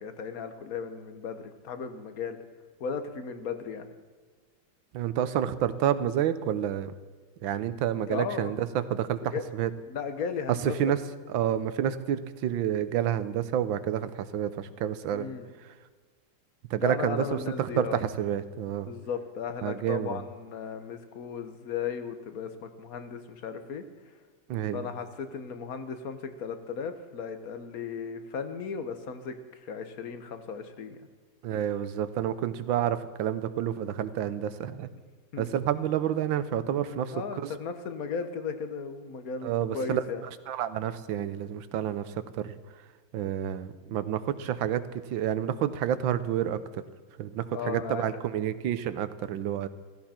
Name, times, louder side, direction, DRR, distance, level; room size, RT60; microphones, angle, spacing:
voice 1, 0.0-2.4 2.8-3.9 8.1-8.7 9.3-9.4 9.9-11.0 15.1-15.5 16.8-18.0 18.9-23.8 24.7-31.0 35.3-35.5 36.7-40.2 47.5-48.0, left 6 dB, 50° left, 9 dB, 1.4 m, -36 dB
voice 2, 4.9-6.9 7.4-9.7 10.5-11.0 11.3-15.3 16.7-18.9 19.6-20.2 24.5-24.9 31.4-34.9 35.4-37.5 39.4-42.6 43.1-44.8 45.1-46.8 47.2-49.7, right 10 dB, 80° right, 13 dB, 1.5 m, -29 dB
15.5 x 15.5 x 4.4 m, 1.5 s
omnidirectional pair, 2.1 m